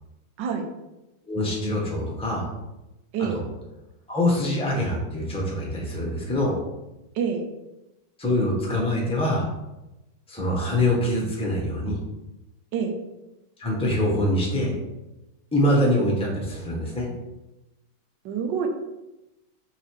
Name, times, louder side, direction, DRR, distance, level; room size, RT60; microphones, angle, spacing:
voice 1, 1.3-2.5 3.3-3.4 4.1-6.5 8.2-9.5 10.3-12.0 13.6-14.7 15.5-17.1, left 1 dB, 5° left, -2 dB, 1.1 m, -24 dB
voice 2, 18.2-18.7, right 6 dB, 65° right, 5 dB, 1.4 m, -26 dB
6.6 x 3.8 x 4.7 m, 0.99 s
omnidirectional pair, 2.3 m